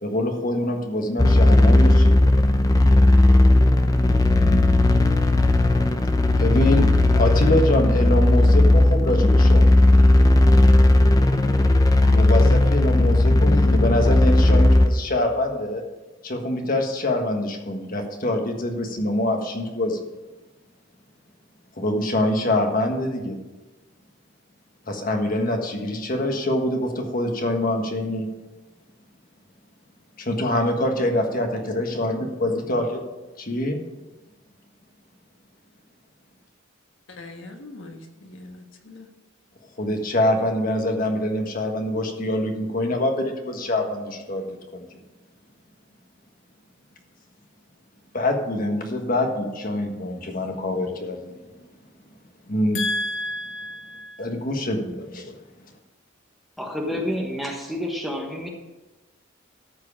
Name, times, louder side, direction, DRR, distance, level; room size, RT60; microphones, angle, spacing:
voice 1, 0.0-2.2 4.3-4.8 6.4-9.8 12.1-15.8 16.2-20.0 21.8-23.4 24.9-28.3 30.2-33.0 33.4-33.8 39.8-44.5 44.7-44.9 48.1-51.4 52.5-52.8 54.2-55.3, left 1 dB, 45° left, 3 dB, 1.5 m, -25 dB
sound 1, 1.2-14.9, left 1 dB, 20° left, 0.7 m, -16 dB
voice 2, 37.1-39.1 52.7-54.3, left 1 dB, 70° left, 3 dB, 1.5 m, -33 dB
voice 3, 56.6-58.5, equal, ahead, 0 dB, 1.2 m, -29 dB
13.5 x 4.8 x 7.2 m, 1.1 s
head